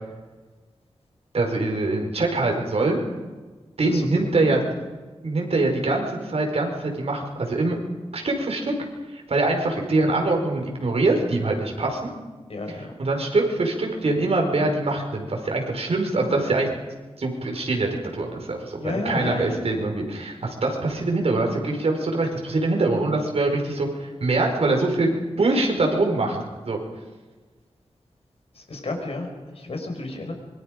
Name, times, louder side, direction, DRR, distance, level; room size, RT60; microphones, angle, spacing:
voice 1, 1.3-3.0 3.8-4.6 5.2-7.8 8.1-8.7 9.1-12.1 13.0-16.7 17.2-25.1 25.4-26.4 26.6-26.8, right 2 dB, 70° right, 2 dB, 4.9 m, -23 dB
voice 2, 3.8-4.6 12.5-12.9 18.8-19.6 28.5-30.3, left 2 dB, 70° left, 3 dB, 5.5 m, -32 dB
26.0 x 23.0 x 5.2 m, 1.3 s
wide cardioid pair, 100°, 11 cm